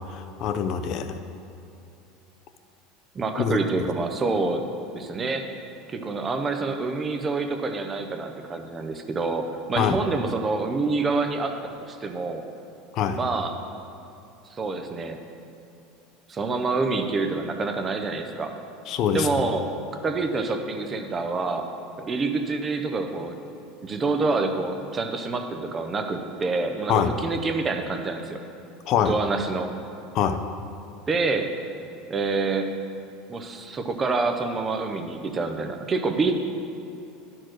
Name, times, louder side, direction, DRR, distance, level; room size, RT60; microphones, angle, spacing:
voice 1, 0.1-1.2 3.4-3.9 9.8-10.0 12.9-13.2 18.9-19.3 26.9-27.1 28.9-29.1 30.1-30.4, left 8 dB, 35° left, 9 dB, 0.5 m, -24 dB
voice 2, 3.1-4.6 4.9-5.5 5.9-11.5 11.9-12.4 13.1-13.5 14.5-15.2 16.3-18.5 19.1-19.7 20.0-21.7 22.1-23.4 23.8-28.4 29.1-29.7 31.1-31.5 32.1-32.7 33.3-36.3, right 3 dB, 15° right, 6 dB, 0.5 m, -27 dB
11.5 x 4.5 x 6.2 m, 2.8 s
cardioid pair, 180°, 0 cm